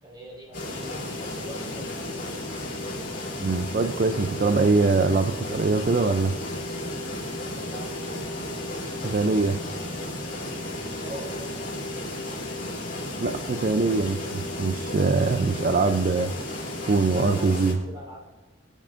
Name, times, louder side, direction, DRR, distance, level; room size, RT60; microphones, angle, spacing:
voice 1, 0.0-2.4 7.5-8.0 11.0-11.7 17.3-17.5 17.8-18.3, right 1 dB, 25° right, -3 dB, 4.5 m, -43 dB
sound 1, 0.5-17.7, left 1 dB, 45° left, 3.2 m, -33 dB
voice 2, 3.4-6.3 9.0-9.6 13.2-16.3 16.8-17.8, right 3 dB, 45° right, 8 dB, 0.4 m, -23 dB
22.0 x 9.0 x 2.6 m, 1.2 s
head